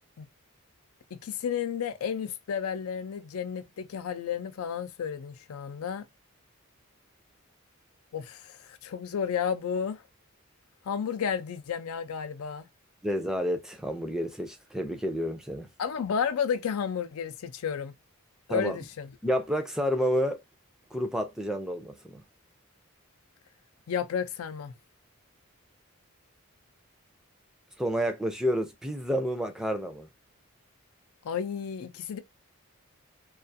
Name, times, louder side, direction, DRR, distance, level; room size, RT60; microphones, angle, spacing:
voice 1, 1.1-6.1 8.1-10.0 10.8-12.7 15.8-17.9 18.5-19.1 23.9-24.7 31.2-32.2, left 7 dB, 85° left, 0.4 m, -32 dB
voice 2, 13.0-15.7 18.5-18.8 19.2-20.4 20.9-22.2 27.8-30.1, equal, ahead, 0.3 m, -29 dB
2.3 x 2.3 x 2.5 m
head